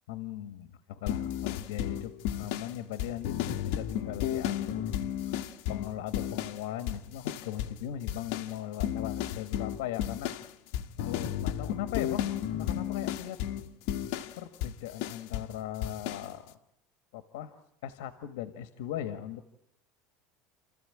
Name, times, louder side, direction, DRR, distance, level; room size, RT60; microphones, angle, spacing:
voice 1, 0.1-2.1 2.4-4.9 5.3-5.4 5.7-10.3 11.0-13.4 14.3-16.5 17.1-17.5 17.8-19.5, left 11 dB, 80° left, 10 dB, 1.5 m, -39 dB
sound 1, 1.1-6.6 6.9-7.8 8.1-15.5 15.8-16.3, left 11 dB, 60° left, 1.5 m, -33 dB
30.0 x 14.5 x 9.9 m, 0.80 s
cardioid pair, 175°, 0 cm